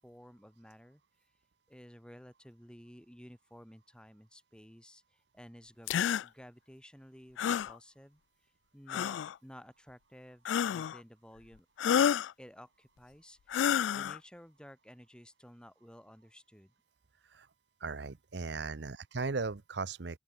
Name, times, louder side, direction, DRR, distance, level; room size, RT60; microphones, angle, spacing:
voice 1, 0.0-1.0 1.7-8.2 8.7-11.7 12.4-16.7, equal, 5° left, 6.1 m, -54 dB
sound 1, 5.9-6.2 7.4-7.7 8.9-9.3 10.5-11.0 11.8-12.3 13.5-14.2, left 9 dB, 80° left, 0.3 m, -29 dB
voice 2, 17.8-20.2, right 4 dB, 65° right, 0.8 m, -37 dB
open air
head